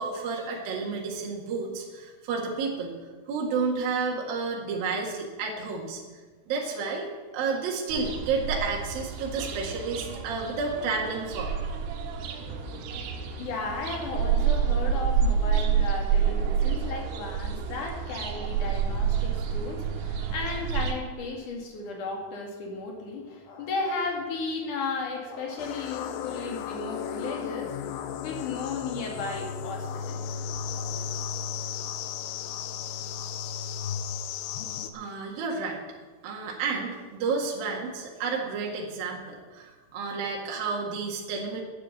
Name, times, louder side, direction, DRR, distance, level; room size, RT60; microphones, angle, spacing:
voice 1, 0.0-3.0 3.3-6.0 6.5-7.1 7.3-11.5 34.9-35.8 36.2-41.6, right 4 dB, 55° right, -2 dB, 3.3 m, -31 dB
sound 1, 7.9-20.9, right 7 dB, 90° right, 3.9 m, -28 dB
voice 2, 13.4-31.2, left 3 dB, 50° left, 1 dB, 3.1 m, -35 dB
sound 2, 25.6-34.9, left 8 dB, 80° left, 2.9 m, -35 dB
10.5 x 10.5 x 8.4 m, 1.4 s
omnidirectional pair, 5.6 m